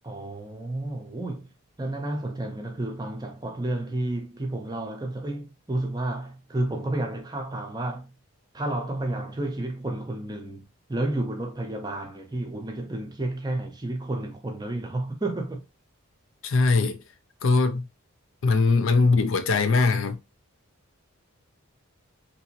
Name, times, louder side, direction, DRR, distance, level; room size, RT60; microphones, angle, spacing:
voice 1, 0.0-8.1 8.5-15.6, right 2 dB, 20° right, 0.5 m, -31 dB
voice 2, 16.4-17.0 17.4-17.9 18.4-20.2, left 3 dB, 65° left, 0.5 m, -21 dB
2.9 x 2.7 x 2.8 m
head